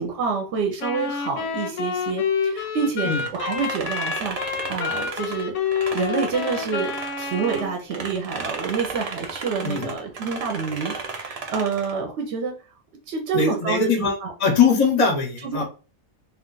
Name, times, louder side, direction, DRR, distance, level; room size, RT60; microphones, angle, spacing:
voice 1, 0.0-4.4 4.7-12.5 13.1-14.3 15.4-15.6, right 5 dB, 65° right, 3 dB, 0.8 m, -28 dB
Wind instrument woodwind instrument, 0.8-7.8, left 6 dB, 85° left, 1.0 m, -28 dB
sound 1, 3.1-7.6 7.9-12.0, right 4 dB, 85° right, 0.3 m, -34 dB
voice 2, 9.6-10.0 13.3-15.6, left 5 dB, 45° left, 2 dB, 0.4 m, -21 dB
2.4 x 2.3 x 3.7 m, 0.34 s
omnidirectional pair, 1.4 m